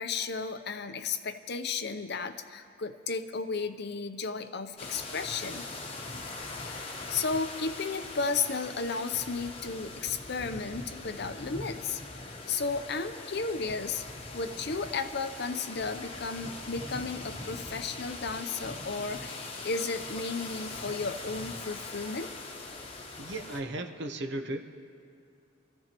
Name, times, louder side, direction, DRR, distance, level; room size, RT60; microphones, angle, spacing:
voice 1, 0.0-5.7 6.6-14.0 14.3-22.3, left 4 dB, 50° left, 9 dB, 0.6 m, -34 dB
sound 1, 4.8-23.6, left 2 dB, 30° left, 1.0 m, -41 dB
voice 2, 23.2-24.6, right 2 dB, 55° right, 5 dB, 0.9 m, -35 dB
27.0 x 15.0 x 3.0 m, 2.5 s
head